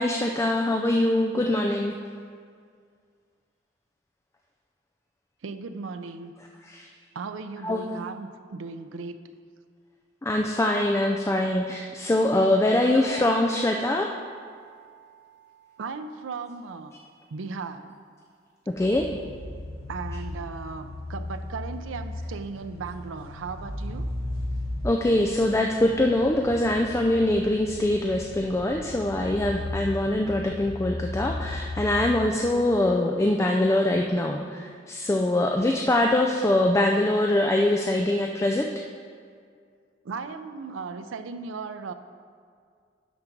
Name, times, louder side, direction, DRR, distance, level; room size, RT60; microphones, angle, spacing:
voice 1, 0.0-2.0 6.6-6.9 7.6-7.9 10.2-14.1 18.8-19.1 24.8-38.7, left 1 dB, 15° left, 2 dB, 0.3 m, -23 dB
voice 2, 5.4-6.3 7.1-9.2 15.8-16.9 17.3-17.9 19.9-24.1 40.0-41.9, right 4 dB, 90° right, 9 dB, 0.5 m, -36 dB
sound 1, 13.0-16.7, right 4 dB, 65° left, 1.0 m, -45 dB
sound 2, 18.7-32.4, left 1 dB, 20° right, 2.4 m, -36 dB
11.5 x 3.9 x 6.0 m, 2.1 s
head